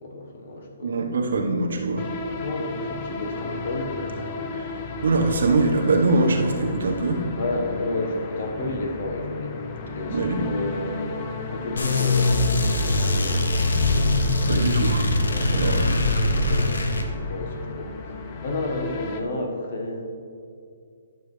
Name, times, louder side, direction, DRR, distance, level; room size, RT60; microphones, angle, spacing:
voice 1, 0.0-1.0 2.4-4.0 7.4-9.6 9.9-11.2 11.5-12.6 12.8-13.4 14.6-14.7 15.2-20.1, left 2 dB, 55° left, 1 dB, 1.5 m, -32 dB
voice 2, 0.8-2.1 4.5-4.7 5.0-7.3 10.1-10.5 14.5-15.1 15.5-16.0, right 3 dB, 75° right, 1 dB, 1.3 m, -23 dB
sound 1, 2.0-19.2, left 3 dB, 35° left, 0.6 m, -34 dB
sound 2, 11.8-17.1, left 2 dB, 90° left, 0.9 m, -22 dB
11.5 x 6.7 x 3.4 m, 2.4 s
hypercardioid pair, 155°, 0 cm